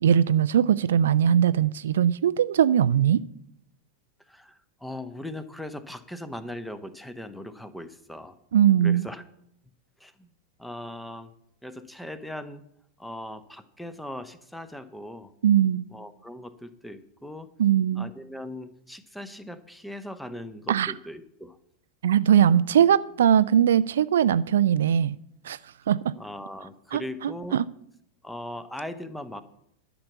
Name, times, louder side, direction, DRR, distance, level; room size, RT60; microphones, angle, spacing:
voice 1, 0.0-3.2 8.5-9.1 15.4-15.8 17.6-18.1 20.7-20.9 22.0-25.2 25.4-25.6 25.9-26.1 26.9-27.7, right 9 dB, 60° right, 0.3 m, -21 dB
voice 2, 4.3-8.4 8.8-9.2 10.0-10.3 10.6-11.3 11.6-12.6 13.0-15.3 15.9-17.5 18.0-21.6 26.2-27.6 28.2-29.4, left 1 dB, 5° left, 0.9 m, -39 dB
12.0 x 5.9 x 8.3 m
figure-of-eight pair, 90°, 0 cm